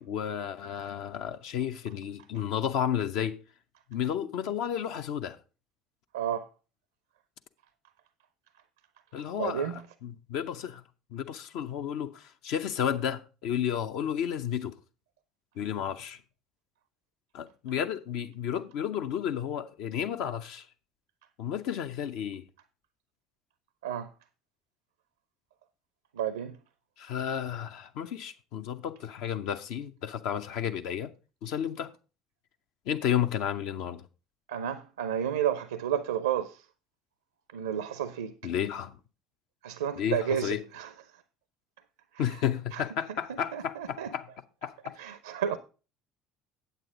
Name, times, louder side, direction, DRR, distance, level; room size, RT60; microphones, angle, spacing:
voice 1, 0.0-3.4 3.9-5.4 9.1-9.7 10.0-10.8 11.1-14.8 15.6-16.2 17.3-20.7 21.4-22.5 27.0-31.1 31.4-31.9 32.9-34.1 38.4-39.0 40.0-40.6 42.2-44.3 44.6-44.9, left 9 dB, 55° left, 0.6 m, -32 dB
voice 2, 6.1-6.5 9.4-9.8 23.8-24.1 26.1-26.6 34.5-36.6 37.5-38.3 39.6-40.9 42.1-42.4 42.7-42.8 43.3-44.1 45.0-45.6, right 9 dB, 70° right, 0.5 m, -31 dB
9.1 x 8.2 x 3.7 m
figure-of-eight pair, 60°, 0 cm